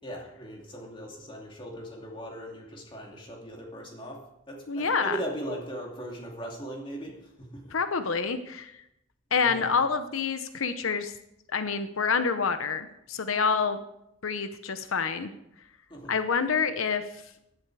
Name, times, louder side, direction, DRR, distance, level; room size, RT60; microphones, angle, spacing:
voice 1, 0.0-7.7 8.1-8.2 9.3-9.8 15.9-16.2, right 1 dB, 25° left, -1 dB, 2.8 m, -39 dB
voice 2, 4.7-5.2 7.7-8.8 9.3-11.1 11.5-13.8 14.2-15.3 16.1-17.0, left 5 dB, 85° left, 10 dB, 0.8 m, -27 dB
15.0 x 11.5 x 4.8 m, 0.83 s
head